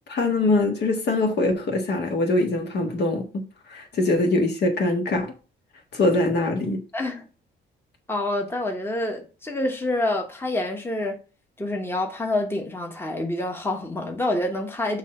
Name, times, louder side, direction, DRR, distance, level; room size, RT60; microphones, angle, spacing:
voice 1, 0.1-3.4 3.7-5.3 5.9-6.8, left 2 dB, 60° left, 1.5 m, -23 dB
voice 2, 6.9-7.2 8.1-11.2 11.6-15.0, left 1 dB, 10° left, 1.0 m, -27 dB
6.3 x 2.8 x 5.3 m
cardioid pair, 90°, 20 cm